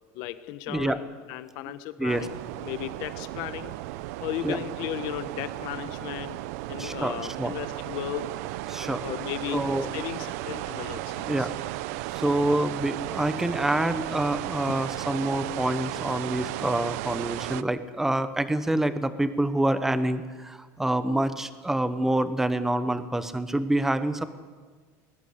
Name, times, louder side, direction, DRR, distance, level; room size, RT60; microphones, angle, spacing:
voice 1, 0.1-2.3 2.6-3.7 4.2-6.4 6.7-8.3 9.0-9.6 9.9-11.5 14.7-14.8, left 13 dB, 60° left, 12 dB, 1.3 m, -35 dB
voice 2, 0.7-1.0 2.0-2.3 4.4-4.6 6.8-7.5 8.7-9.0 9.5-9.9 11.3-11.5 12.1-24.2, right 1 dB, 5° right, 12 dB, 1.0 m, -27 dB
sound 1, 2.1-17.6, right 16 dB, 80° right, 0.7 m, -35 dB
20.5 x 20.0 x 8.1 m, 1.5 s
cardioid pair, 165°, 8 cm